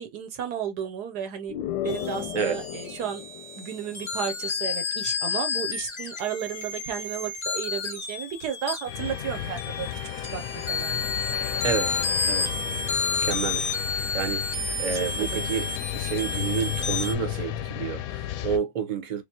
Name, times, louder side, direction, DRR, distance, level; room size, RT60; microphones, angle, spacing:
voice 1, 0.0-1.5 1.8-3.2 3.6-9.9 10.3-10.4 10.7-11.1 14.8-15.5, right 8 dB, 70° right, 1.3 m, -33 dB
sound 1, 1.5-4.4, left 12 dB, 90° left, 1.2 m, -35 dB
sound 2, 1.9-17.1, left 4 dB, 25° left, 0.7 m, -31 dB
sound 3, 8.9-18.6, left 12 dB, 70° left, 1.0 m, -33 dB
voice 2, 13.2-19.2, right 7 dB, 30° right, 0.9 m, -30 dB
3.5 x 3.4 x 2.8 m
omnidirectional pair, 1.8 m